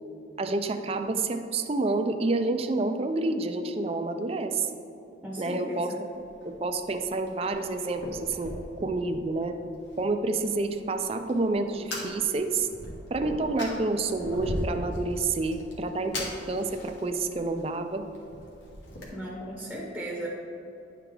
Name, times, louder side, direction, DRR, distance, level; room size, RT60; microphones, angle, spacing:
voice 1, 0.4-4.8 5.4-5.9 6.4-8.5 8.8-9.6 10.0-12.7 13.1-18.0, right 3 dB, 30° right, 7 dB, 0.4 m, -28 dB
voice 2, 5.2-6.0 19.1-20.3, right 1 dB, ahead, -4 dB, 0.8 m, -36 dB
Fire, 6.1-19.1, left 1 dB, 70° left, 1.6 m, -40 dB
10.0 x 4.6 x 3.7 m, 2.9 s
head